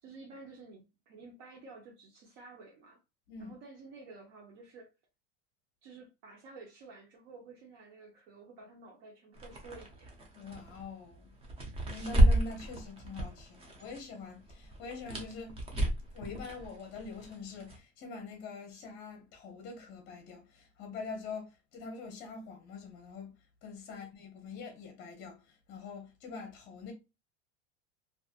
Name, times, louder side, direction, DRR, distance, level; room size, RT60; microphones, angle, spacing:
voice 1, 0.0-3.0 3.4-4.9 5.8-10.1 23.9-24.0, right 3 dB, 55° right, 0.8 m, -52 dB
sound 1, 9.3-14.0 14.3-17.8, right 1 dB, 15° right, 0.5 m, -31 dB
voice 2, 10.3-11.3 11.8-15.6 16.1-23.3 23.6-26.9, left 4 dB, 30° left, 0.7 m, -44 dB
2.5 x 2.5 x 2.4 m
supercardioid pair, 150°, 35 cm